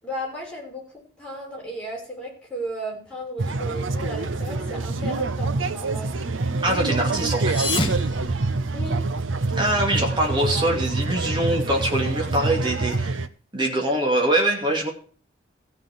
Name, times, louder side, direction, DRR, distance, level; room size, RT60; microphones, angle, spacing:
voice 1, 0.0-6.1 8.7-9.0, equal, 5° left, -5 dB, 6.2 m, -35 dB
sound 1, 3.4-13.3, right 3 dB, 75° right, 0.8 m, -26 dB
voice 2, 6.6-7.7 9.6-13.2 13.5-14.9, right 1 dB, 25° right, -1 dB, 2.5 m, -23 dB
sound 2, 7.3-9.2, left 2 dB, 25° left, 1.6 m, -30 dB
15.5 x 6.0 x 7.3 m, 0.42 s
head